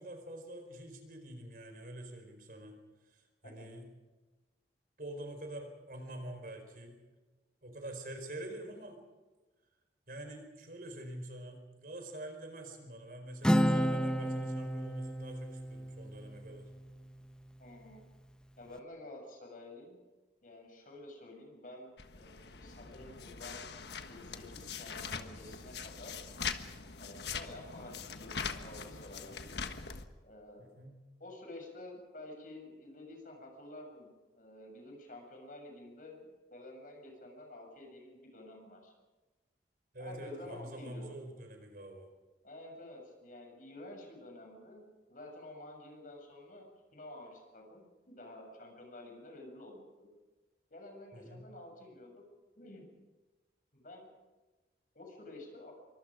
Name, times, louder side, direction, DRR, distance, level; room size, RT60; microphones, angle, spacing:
voice 1, 0.0-3.9 5.0-7.0 7.6-9.0 10.1-16.7 30.6-30.9 39.9-42.1 51.1-51.5, right 1 dB, 55° right, 5 dB, 4.6 m, -46 dB
Acoustic guitar, 13.4-17.1, equal, 5° left, 0.9 m, -32 dB
voice 2, 17.6-18.0 18.6-20.0 20.4-23.7 24.1-26.2 27.0-27.9 28.2-29.6 30.2-30.8 31.2-34.1 34.3-38.9 40.0-41.0 42.4-50.1 50.7-52.2 52.6-52.9 53.7-54.1 54.9-55.7, left 1 dB, 50° left, 2 dB, 7.2 m, -50 dB
sound 1, 22.0-30.0, left 6 dB, 75° left, 1.4 m, -42 dB
27.0 x 24.5 x 5.1 m, 1.2 s
head